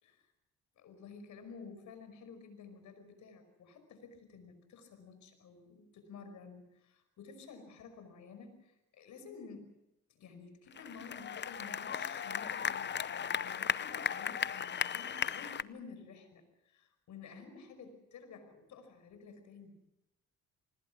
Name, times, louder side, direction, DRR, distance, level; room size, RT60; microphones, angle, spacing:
voice 1, 0.8-9.7 10.1-19.8, left 5 dB, 75° left, 9 dB, 5.5 m, -52 dB
sound 1, 10.7-15.6, left 8 dB, 35° left, 0.7 m, -36 dB
26.0 x 20.5 x 6.2 m, 0.90 s
cardioid pair, 90°, 30 cm